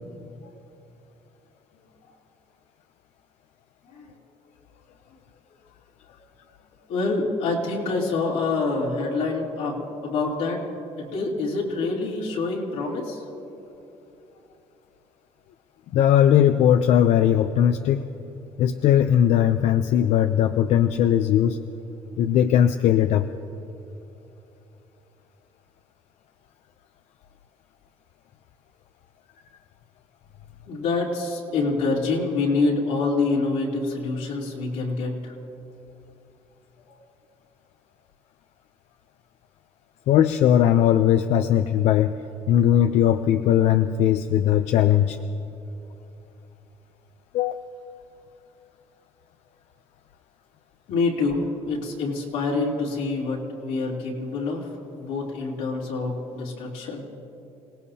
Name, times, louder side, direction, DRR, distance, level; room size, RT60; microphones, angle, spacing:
voice 1, 6.9-10.6 11.0-13.2 30.7-35.3 36.9-37.0 50.9-54.7 55.0-57.0, left 3 dB, 90° left, -3 dB, 3.3 m, -26 dB
voice 2, 15.9-18.1 18.6-21.6 22.2-23.3 40.1-42.1 42.5-45.2 47.3-47.6, left 10 dB, 70° left, 9 dB, 0.5 m, -19 dB
27.5 x 18.5 x 2.8 m, 2.9 s
cardioid pair, 125°, 12 cm